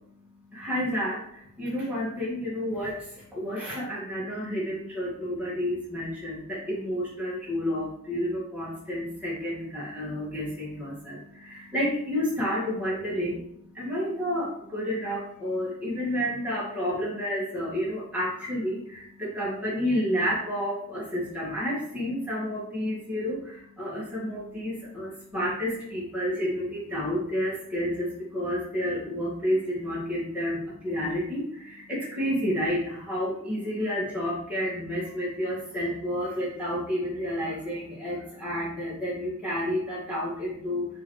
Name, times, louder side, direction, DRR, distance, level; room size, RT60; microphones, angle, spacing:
voice 1, 0.5-13.4 13.7-40.9, equal, 5° right, -9 dB, 1.9 m, -30 dB
7.1 x 3.2 x 4.7 m, 0.73 s
head